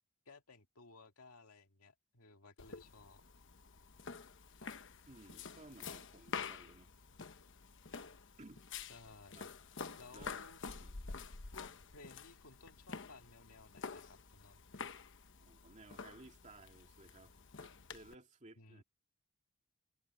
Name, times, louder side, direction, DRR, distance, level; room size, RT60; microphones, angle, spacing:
voice 1, 0.3-3.2 4.6-4.7 8.9-9.4 10.0-10.6 11.5-14.7 18.6-18.8, left 3 dB, 80° left, 2.1 m, -58 dB
sound 1, 2.6-18.2, left 5 dB, 55° left, 1.1 m, -49 dB
voice 2, 5.1-6.9 8.4-8.6 9.3-9.5 10.1-11.0 15.4-18.8, right 2 dB, 35° right, 2.5 m, -58 dB
head